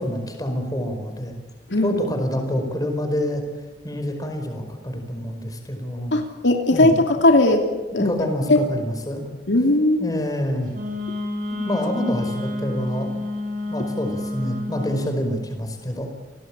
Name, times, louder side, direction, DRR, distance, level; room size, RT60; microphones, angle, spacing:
voice 1, 0.0-1.4 1.8-3.4 3.8-6.1 6.7-6.9 7.9-9.4 10.0-10.7 11.6-13.2 13.7-16.2, equal, 20° left, 5 dB, 5.0 m, -27 dB
voice 2, 6.1-7.7 7.9-8.1 8.5-8.6 9.5-10.2, left 2 dB, 80° left, 4 dB, 2.9 m, -18 dB
Wind instrument woodwind instrument, 10.7-15.1, left 2 dB, 50° right, 5.5 m, -29 dB
29.5 x 19.0 x 8.9 m, 1.2 s
head